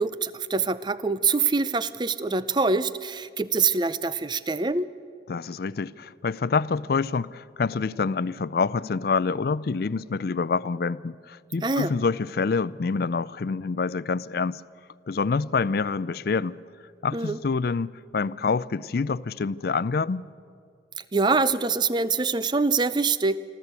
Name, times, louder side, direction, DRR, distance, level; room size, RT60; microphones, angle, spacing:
voice 1, 0.0-4.9 11.6-11.9 17.1-17.4 21.1-23.4, right 4 dB, 25° right, 0.5 m, -24 dB
voice 2, 5.3-14.6 15.1-16.6 17.0-20.3, left 4 dB, 55° left, 0.4 m, -27 dB
26.5 x 13.5 x 8.2 m
head